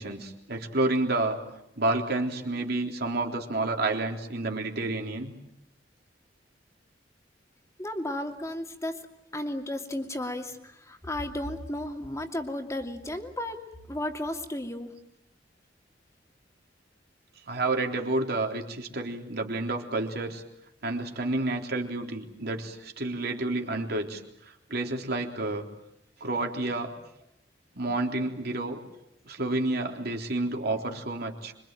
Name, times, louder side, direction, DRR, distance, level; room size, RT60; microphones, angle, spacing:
voice 1, 0.0-1.4 1.8-5.3 17.5-20.4 20.8-24.2 24.7-25.6 26.2-26.9 27.8-28.8 29.3-31.5, right 2 dB, 60° right, 2 dB, 3.6 m, -29 dB
voice 2, 7.8-9.1 9.3-13.6 13.9-14.9, left 1 dB, 15° left, 4 dB, 2.6 m, -34 dB
26.0 x 24.5 x 9.1 m, 0.79 s
head